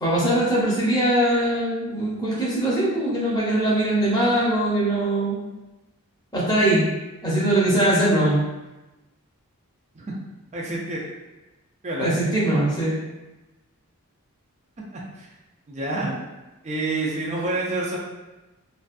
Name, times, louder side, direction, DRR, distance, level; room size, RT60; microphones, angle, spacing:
voice 1, 0.0-5.4 6.3-6.8 7.2-8.4 12.0-13.0, right 1 dB, 15° left, -7 dB, 0.7 m, -21 dB
voice 2, 10.5-11.0 11.8-12.1 14.9-15.0 15.7-16.1 16.6-18.0, right 2 dB, 30° right, -3 dB, 0.4 m, -27 dB
2.5 x 2.3 x 2.4 m, 1.1 s
head